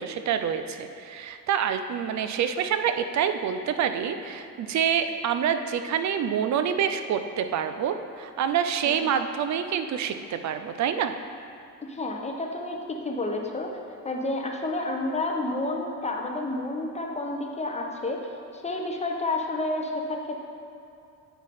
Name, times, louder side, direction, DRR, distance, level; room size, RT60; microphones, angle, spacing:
voice 1, 0.0-11.1, right 8 dB, 50° right, 9 dB, 0.6 m, -27 dB
voice 2, 11.9-13.7 14.0-18.2 18.6-20.4, left 2 dB, 20° left, 1 dB, 0.9 m, -30 dB
9.1 x 4.9 x 4.2 m, 2.6 s
cardioid pair, 95°, 35 cm